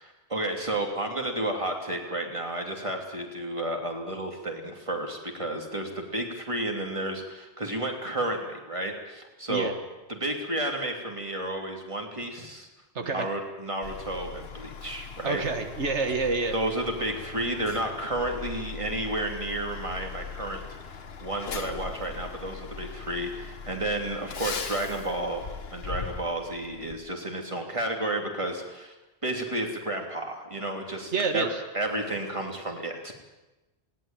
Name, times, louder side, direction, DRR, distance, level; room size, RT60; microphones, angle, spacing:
voice 1, 0.0-9.7 10.1-12.7 13.1-15.4 16.5-20.6 20.9-25.4 25.7-28.9 29.2-31.5 31.7-33.1, right 1 dB, 30° right, 2 dB, 3.1 m, -32 dB
voice 2, 13.0-13.3 15.2-16.5 31.1-31.6, right 4 dB, 85° right, 6 dB, 1.8 m, -28 dB
Truck, 13.8-26.9, left 5 dB, 60° left, 1.4 m, -40 dB
20.0 x 18.0 x 9.0 m, 1.1 s
omnidirectional pair, 1.1 m